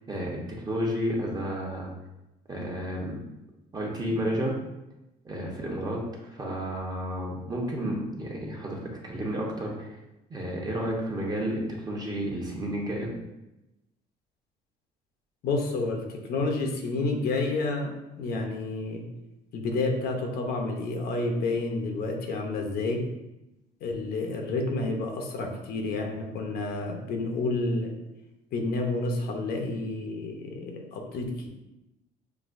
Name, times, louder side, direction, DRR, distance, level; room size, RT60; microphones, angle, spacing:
voice 1, 0.1-0.4 0.7-1.9 2.5-3.2 3.7-4.5 5.2-6.0 6.3-9.9 10.3-13.1, equal, 25° right, -2 dB, 1.0 m, -31 dB
voice 2, 15.4-19.0 19.5-23.0 23.8-27.9 28.5-31.5, left 3 dB, 65° left, 2 dB, 0.8 m, -30 dB
6.0 x 2.7 x 2.6 m, 0.93 s
cardioid pair, 110°, 17 cm